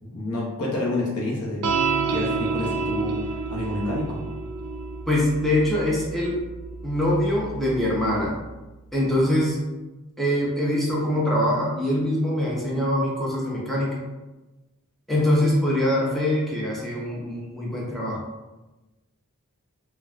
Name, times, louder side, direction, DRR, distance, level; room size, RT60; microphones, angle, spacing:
voice 1, 0.0-1.6 2.1-3.2 3.5-4.2, left 2 dB, 75° left, -3 dB, 0.7 m, -28 dB
sound 1, 1.6-8.3, right 4 dB, 80° right, 0.4 m, -29 dB
voice 2, 5.1-6.4 6.8-8.3 8.9-9.6 10.2-14.0 15.1-18.2, left 1 dB, ahead, -5 dB, 0.6 m, -23 dB
3.9 x 2.2 x 2.3 m, 1.1 s
head